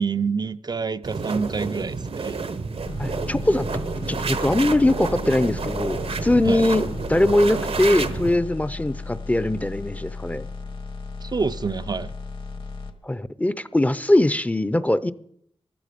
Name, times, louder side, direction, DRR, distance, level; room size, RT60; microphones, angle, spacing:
voice 1, 0.0-2.3 6.4-6.6 11.2-12.1, right 5 dB, 45° right, 0.4 m, -27 dB
sound 1, 1.0-8.4, right 4 dB, 85° right, 1.0 m, -29 dB
sound 2, 2.9-12.9, left 4 dB, 60° left, 1.4 m, -35 dB
voice 2, 3.0-3.7 4.1-6.8 7.1-10.5 13.0-15.1, left 1 dB, 15° left, 0.5 m, -21 dB
15.0 x 11.5 x 5.1 m
wide cardioid pair, 80°, 10 cm